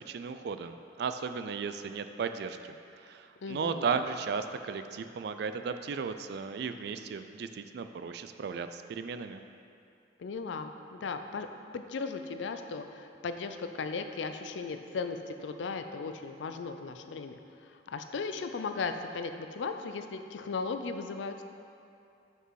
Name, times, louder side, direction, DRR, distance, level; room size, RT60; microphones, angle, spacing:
voice 1, 0.1-9.4, right 5 dB, 60° right, 9 dB, 0.3 m, -35 dB
voice 2, 3.4-4.0 10.2-11.5 11.7-21.4, left 4 dB, 80° left, 8 dB, 0.4 m, -37 dB
6.1 x 5.5 x 4.7 m, 2.6 s
head